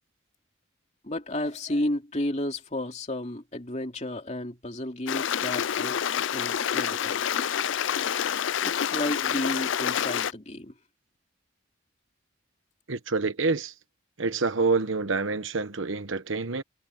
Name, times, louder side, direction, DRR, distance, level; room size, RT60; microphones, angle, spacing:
voice 1, 1.0-6.0 6.3-7.3 8.6-10.7, left 1 dB, 35° left, 2.8 m, -32 dB
Stream, 5.1-10.3, left 9 dB, 65° left, 0.4 m, -28 dB
voice 2, 12.9-13.7 14.2-16.6, right 4 dB, 70° right, 1.1 m, -27 dB
head